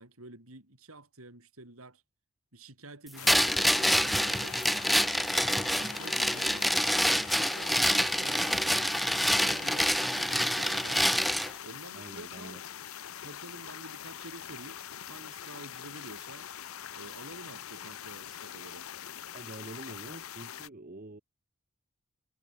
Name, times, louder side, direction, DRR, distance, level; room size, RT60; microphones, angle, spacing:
voice 1, 0.0-2.0 2.5-4.6 5.4-9.0 9.4-11.1 11.6-12.6 13.2-14.8 15.1-16.5 16.9-18.9, right 2 dB, 80° right, 5.6 m, -49 dB
sound 1, 3.2-20.7, left 9 dB, 75° left, 0.7 m, -43 dB
sound 2, 3.3-11.5, equal, ahead, 0.4 m, -27 dB
voice 2, 11.9-12.6 19.3-21.2, right 2 dB, 40° right, 1.1 m, -46 dB
head